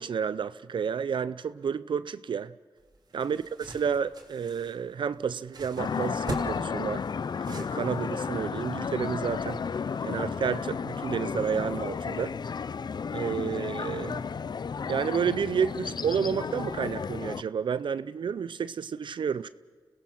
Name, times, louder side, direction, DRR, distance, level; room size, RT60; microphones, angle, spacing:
voice 1, 0.0-2.5 3.1-7.0 7.5-9.6 10.0-12.3 13.1-14.2 14.9-19.5, right 7 dB, 75° right, 15 dB, 0.5 m, -30 dB
sound 1, 2.8-8.2, right 2 dB, 55° right, 3.2 m, -41 dB
sound 2, 5.8-17.4, left 6 dB, 60° left, 0.5 m, -33 dB
27.5 x 17.0 x 5.8 m, 1.5 s
cardioid pair, 65°, 8 cm